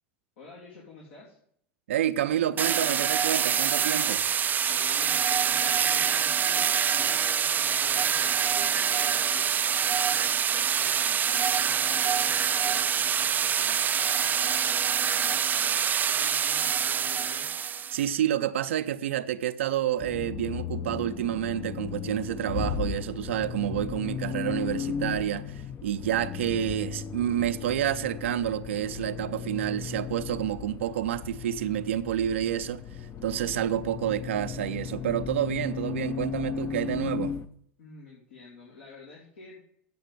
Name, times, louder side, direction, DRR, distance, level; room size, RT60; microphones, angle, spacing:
voice 1, 0.4-1.4 4.7-17.5 37.8-39.6, left 4 dB, 80° left, 3.2 m, -49 dB
voice 2, 1.9-4.3 17.9-32.8 33.2-37.3, right 11 dB, 80° right, 0.6 m, -29 dB
sound 1, 2.6-18.1, right 8 dB, 25° right, 0.4 m, -25 dB
Accelerating revving vroom, 20.0-37.5, left 7 dB, 40° left, 0.7 m, -36 dB
8.5 x 5.9 x 8.1 m
hypercardioid pair, 90°, 7 cm